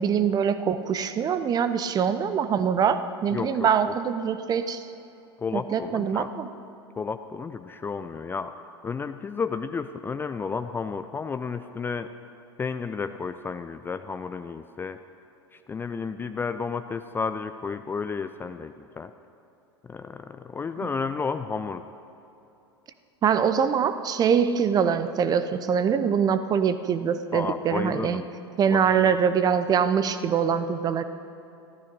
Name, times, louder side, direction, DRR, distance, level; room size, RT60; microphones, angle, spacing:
voice 1, 0.0-4.9 5.5-6.5 23.2-28.2 28.6-31.0, right 7 dB, 25° right, 12 dB, 0.7 m, -24 dB
voice 2, 3.3-3.9 5.4-6.3 7.0-8.5 8.8-12.1 12.6-15.0 15.5-19.1 19.8-21.9 27.3-28.3 28.7-29.0, left 5 dB, 15° left, 10 dB, 0.4 m, -32 dB
15.0 x 13.0 x 5.4 m, 2.9 s
figure-of-eight pair, 85°, 15 cm